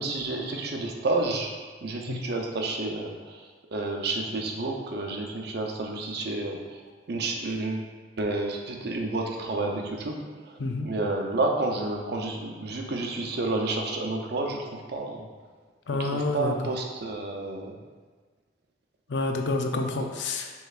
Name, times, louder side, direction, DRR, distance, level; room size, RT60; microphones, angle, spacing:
voice 1, 0.0-1.5 1.8-3.4 3.7-6.8 7.1-7.9 8.2-15.3 16.0-17.8, right 2 dB, 60° right, 1 dB, 0.6 m, -30 dB
voice 2, 15.9-16.5 19.1-20.5, left 3 dB, 85° left, 4 dB, 0.5 m, -28 dB
6.5 x 3.1 x 2.4 m, 1.4 s
head